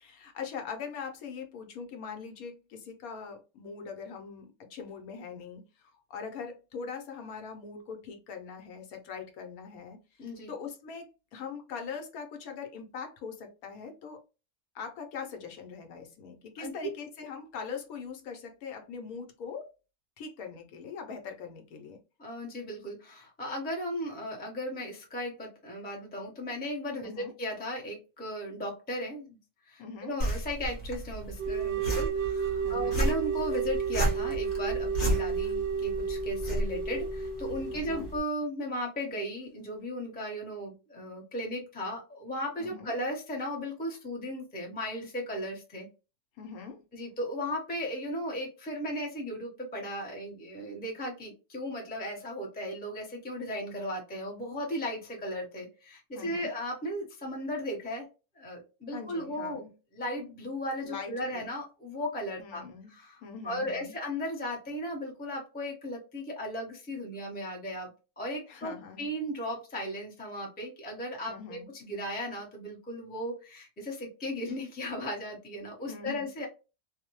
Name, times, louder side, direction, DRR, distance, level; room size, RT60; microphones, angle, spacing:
voice 1, 0.0-14.2 14.7-19.7 20.2-22.0 27.0-27.3 29.8-30.2 32.6-33.0 37.7-38.1 42.6-42.9 46.4-46.8 56.1-56.5 58.9-59.7 60.8-61.5 62.4-62.9 63.2-63.9 68.5-69.1 71.3-71.7 75.9-76.3, left 5 dB, 75° left, 1.1 m, -42 dB
voice 2, 10.2-10.5 16.6-16.9 22.2-29.4 29.7-45.9 46.9-58.1 58.4-59.7 59.9-62.6 62.9-67.9 68.2-76.5, equal, 10° left, 0.4 m, -36 dB
sound 1, 30.2-38.2, right 1 dB, 40° left, 0.9 m, -34 dB
sound 2, 31.4-38.1, right 6 dB, 60° right, 0.7 m, -32 dB
2.6 x 2.0 x 2.9 m
omnidirectional pair, 1.6 m